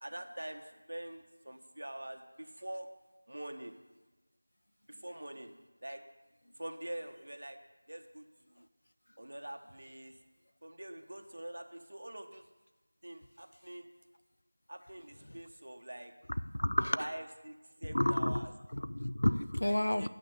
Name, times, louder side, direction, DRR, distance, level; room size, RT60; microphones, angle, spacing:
voice 1, 0.0-2.9 3.3-3.8 4.9-5.5 5.8-6.0 6.5-7.6 7.9-8.7 9.2-10.2 10.6-12.5 13.0-13.9 14.7-16.1 17.0-18.5 19.6-20.1, right 1 dB, 65° right, 1.1 m, -45 dB
voice 2, 16.5-17.1 17.9-20.1, left 1 dB, 75° left, 0.4 m, -31 dB
8.5 x 6.3 x 8.0 m
figure-of-eight pair, 175°, 0 cm